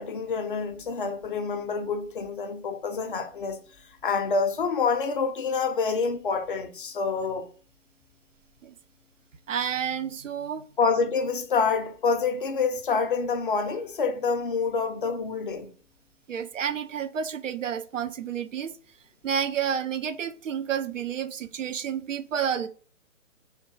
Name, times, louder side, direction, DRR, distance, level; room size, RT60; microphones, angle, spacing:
voice 1, 0.0-3.6 4.0-7.5 10.8-15.7, left 5 dB, 40° left, 0.5 m, -27 dB
voice 2, 9.5-10.7 16.3-18.7 19.2-22.7, right 8 dB, 70° right, 0.5 m, -30 dB
3.5 x 2.3 x 4.4 m
figure-of-eight pair, 130°, 40 cm